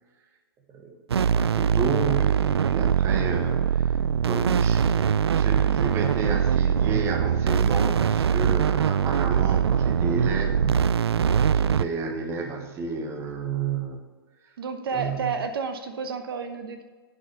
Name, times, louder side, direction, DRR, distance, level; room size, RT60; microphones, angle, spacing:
voice 1, 0.7-1.0 1.3-3.9 4.2-14.0 14.9-15.3, right 5 dB, 20° right, 3 dB, 1.1 m, -32 dB
sound 1, 1.1-11.9, right 7 dB, 85° right, 0.4 m, -22 dB
voice 2, 14.6-16.8, right 5 dB, 65° right, 7 dB, 1.0 m, -30 dB
7.6 x 5.5 x 6.9 m, 1.4 s
hypercardioid pair, 140°, 13 cm